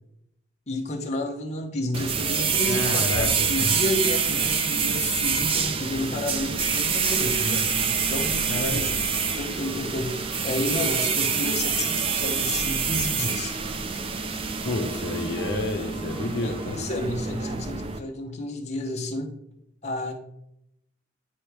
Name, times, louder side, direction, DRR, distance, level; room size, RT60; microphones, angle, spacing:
voice 1, 0.7-8.9 9.4-13.5 16.4-19.3 19.8-20.1, left 1 dB, 35° left, 0 dB, 0.9 m, -31 dB
sound 1, 1.9-18.0, right 5 dB, 30° right, 0.4 m, -26 dB
voice 2, 2.6-3.3 3.6-3.7 8.5-9.1 14.6-16.8, left 2 dB, 65° left, 3 dB, 0.6 m, -30 dB
sound 2, 6.1-17.5, right 1 dB, 80° right, 1.9 m, -47 dB
9.6 x 3.4 x 3.3 m, 0.79 s
head